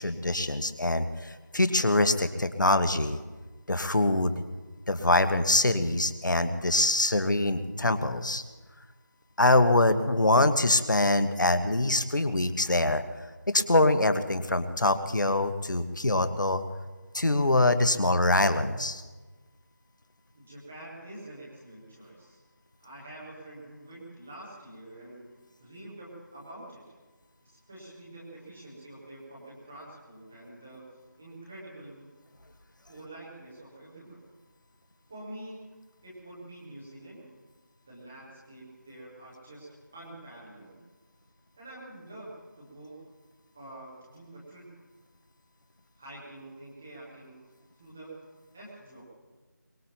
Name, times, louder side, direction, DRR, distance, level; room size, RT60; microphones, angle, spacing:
voice 1, 0.0-3.2 3.7-4.3 4.9-8.4 9.4-13.0 13.5-16.6 17.1-19.0, left 2 dB, 75° left, 9 dB, 1.3 m, -24 dB
voice 2, 20.3-22.4 22.8-25.2 25.6-26.8 27.4-30.8 31.2-32.1 32.9-34.2 35.1-35.7 36.0-37.3 37.9-40.8 41.6-42.9 43.5-44.6 46.0-47.4 47.7-48.2 48.5-49.0, right 1 dB, ahead, -6 dB, 0.5 m, -46 dB
23.0 x 21.5 x 2.9 m, 1.3 s
figure-of-eight pair, 170°, 10 cm